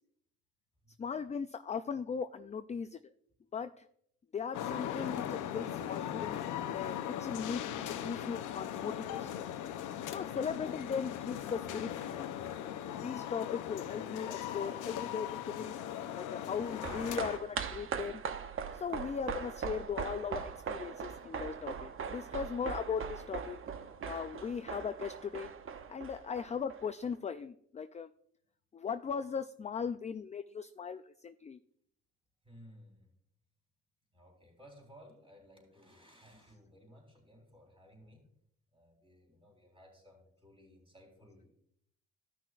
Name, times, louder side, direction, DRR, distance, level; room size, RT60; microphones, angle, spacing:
voice 1, 1.0-3.0 3.5-3.9 4.3-9.5 10.1-12.3 13.0-15.8 16.1-18.2 18.7-23.6 24.0-25.5 25.9-28.1 28.7-31.6, left 6 dB, 25° left, 10 dB, 0.4 m, -38 dB
sound 1, 4.5-17.4, left 10 dB, 90° left, 0.7 m, -39 dB
sound 2, 16.5-27.1 27.4-27.5, right 7 dB, 45° right, 0.8 m, -41 dB
voice 2, 32.4-33.1 34.1-38.2 38.7-41.5, equal, 20° right, 1 dB, 3.7 m, -58 dB
15.0 x 6.1 x 2.5 m, 0.68 s
cardioid pair, 90°, 30 cm